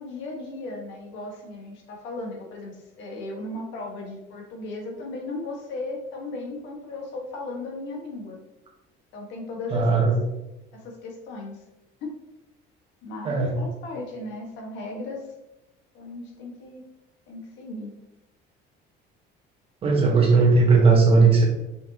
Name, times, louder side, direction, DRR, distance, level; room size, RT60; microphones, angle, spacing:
voice 1, 0.0-8.4 9.1-10.1 10.7-11.6 12.0-12.2 13.0-15.3 15.9-16.8 17.3-17.9 20.0-20.4, left 2 dB, 70° left, 0 dB, 1.7 m, -36 dB
voice 2, 9.7-10.1 13.2-13.5 19.8-21.4, right 4 dB, 30° right, -1 dB, 1.4 m, -17 dB
5.9 x 5.6 x 3.0 m, 0.93 s
cardioid pair, 165°, 19 cm